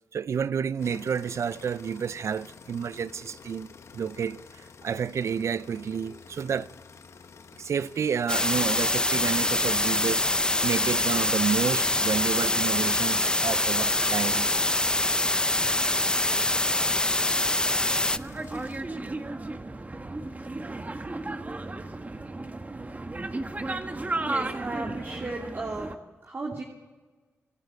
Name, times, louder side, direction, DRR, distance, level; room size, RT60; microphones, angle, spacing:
voice 1, 0.1-3.7 3.9-6.7 7.6-10.3 10.6-14.5, right 7 dB, 70° right, 0.5 m, -30 dB
sound 1, 0.8-18.8, left 5 dB, 65° left, 1.2 m, -50 dB
sound 2, 8.3-18.2, left 2 dB, 15° left, 0.6 m, -24 dB
sound 3, 18.1-26.0, right 2 dB, 30° right, 1.6 m, -34 dB
voice 2, 24.2-25.9 26.2-26.6, right 3 dB, 50° right, 2.9 m, -35 dB
25.5 x 12.0 x 9.2 m
cardioid pair, 50°, 5 cm